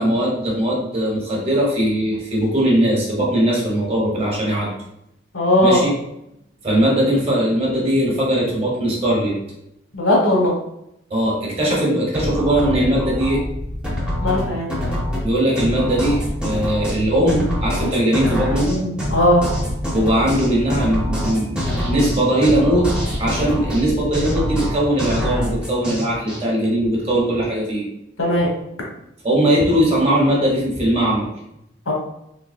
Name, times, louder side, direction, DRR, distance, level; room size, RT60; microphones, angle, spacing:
voice 1, 0.0-4.7 5.6-5.9 6.6-9.3 11.1-13.4 15.2-18.9 19.9-22.9 23.2-27.8 29.2-31.3, right 1 dB, 30° right, -4 dB, 1.1 m, -19 dB
voice 2, 5.3-5.9 9.9-10.5 14.2-14.7 19.1-19.5 28.2-28.5 31.9-32.0, left 1 dB, 85° left, -2 dB, 1.2 m, -17 dB
sound 1, 12.1-26.4, equal, 5° right, 0.7 m, -25 dB
3.9 x 3.3 x 2.5 m, 0.80 s
head